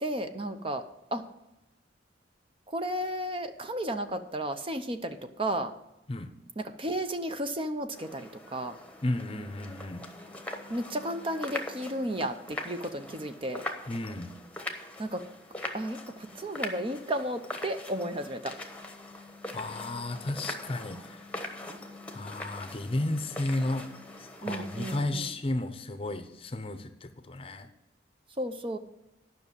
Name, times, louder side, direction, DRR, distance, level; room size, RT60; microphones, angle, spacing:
voice 1, 0.0-0.8 1.1-1.3 2.7-5.7 6.6-8.8 10.7-13.6 15.0-15.3 15.7-18.6 24.4-25.3 28.4-28.8, right 1 dB, 30° right, 8 dB, 0.7 m, -33 dB
sound 1, 7.9-25.0, left 1 dB, 5° left, 1.1 m, -42 dB
voice 2, 9.0-10.1 13.9-14.3 19.5-21.2 22.1-23.9 24.2-27.7, left 1 dB, 30° left, 9 dB, 0.7 m, -33 dB
10.5 x 6.0 x 7.3 m, 0.92 s
head